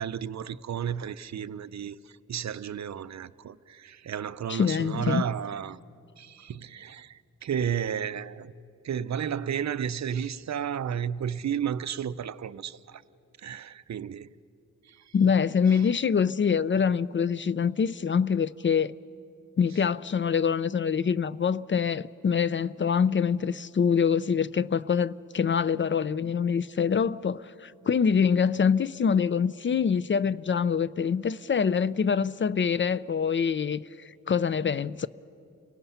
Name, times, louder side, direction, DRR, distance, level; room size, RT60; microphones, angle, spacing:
voice 1, 0.0-5.8 6.2-8.5 8.8-13.0 13.4-14.3 14.9-15.1 15.7-15.9, right 8 dB, 60° right, 0.6 m, -33 dB
voice 2, 4.5-5.2 15.1-18.9 19.6-35.1, left 6 dB, 40° left, 0.4 m, -25 dB
29.5 x 18.5 x 5.6 m
wide cardioid pair, 95°, 31 cm